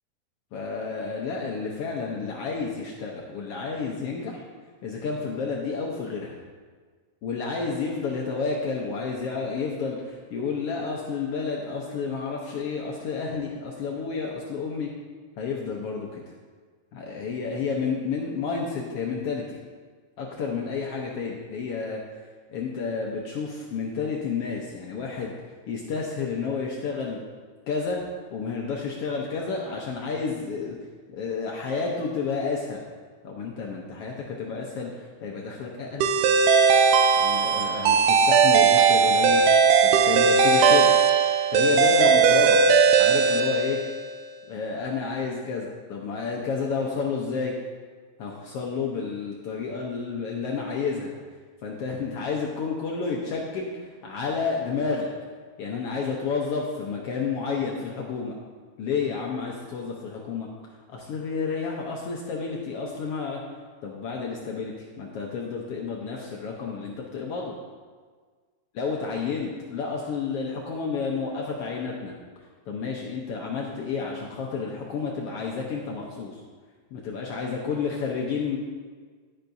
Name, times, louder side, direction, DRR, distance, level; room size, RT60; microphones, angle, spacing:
voice 1, 0.5-4.4 4.8-6.4 7.2-14.9 15.4-16.2 16.9-19.6 20.2-22.0 22.5-25.3 25.7-27.2 27.7-28.0 28.3-30.8 31.1-32.8 33.2-36.1 37.2-41.0 41.5-42.6 43.0-43.8 44.4-47.5 48.2-51.1 51.6-55.1 55.6-58.4 58.8-60.5 60.9-63.4 63.8-67.5 68.7-72.1 72.6-76.4 76.9-78.6, left 5 dB, 75° left, -1 dB, 1.4 m, -30 dB
sound 1, 36.0-44.1, right 5 dB, 85° right, 2.2 m, -18 dB
11.0 x 10.0 x 2.7 m, 1.5 s
omnidirectional pair, 3.7 m